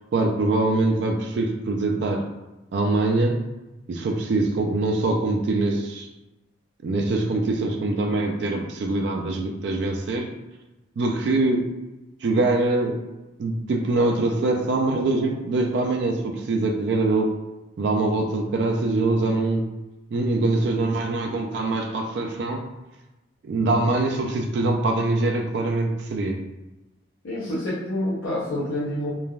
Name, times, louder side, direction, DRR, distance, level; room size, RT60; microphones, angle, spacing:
voice 1, 0.1-2.2 2.7-3.4 3.9-6.1 6.8-10.3 11.0-11.6 12.2-12.9 13.4-17.3 17.8-19.6 20.1-22.6 23.4-26.4, right 2 dB, 60° right, 2 dB, 0.3 m, -23 dB
voice 2, 27.2-29.1, left 1 dB, 85° left, -7 dB, 0.6 m, -28 dB
3.2 x 2.1 x 2.3 m, 1.0 s
head